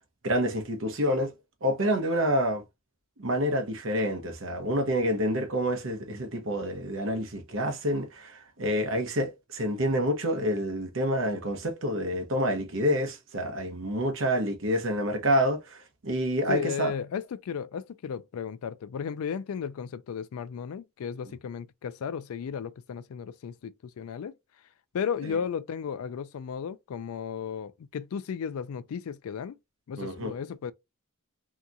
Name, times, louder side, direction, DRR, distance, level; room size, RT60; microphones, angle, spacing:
voice 1, 0.2-1.3 1.6-2.6 3.2-16.9 30.0-30.3, equal, 60° right, 0.8 m, -28 dB
voice 2, 16.5-24.3 24.9-29.6 29.9-30.7, left 7 dB, 80° left, 0.3 m, -34 dB
2.8 x 2.3 x 2.5 m
head